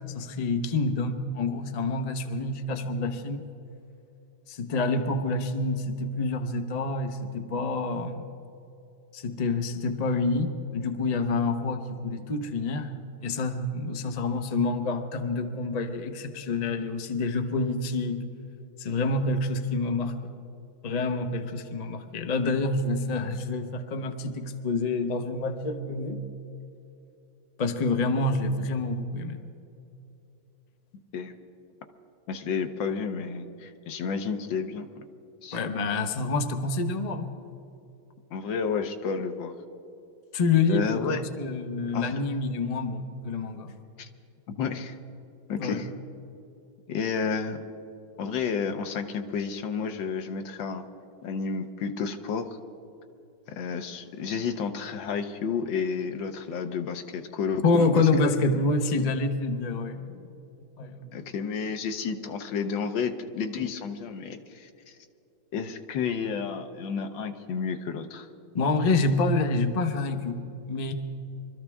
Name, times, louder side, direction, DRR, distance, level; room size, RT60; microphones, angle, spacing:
voice 1, 0.1-3.5 4.5-8.3 9.1-12.9 13.2-18.2 18.8-20.3 20.8-26.3 27.6-29.4 35.5-37.3 40.3-43.7 45.6-45.8 57.6-60.3 60.8-61.0 68.5-70.9, left 3 dB, 50° left, 6 dB, 0.4 m, -27 dB
voice 2, 32.3-35.0 35.4-35.6 38.3-39.6 40.7-41.2 41.9-42.2 44.0-44.1 44.6-45.0 45.5-45.9 46.9-47.6 48.2-50.9 51.2-52.5 53.5-58.1 61.1-65.0 65.5-68.3, left 6 dB, 75° left, 7 dB, 1.6 m, -31 dB
24.5 x 13.5 x 3.5 m, 2.8 s
omnidirectional pair, 2.1 m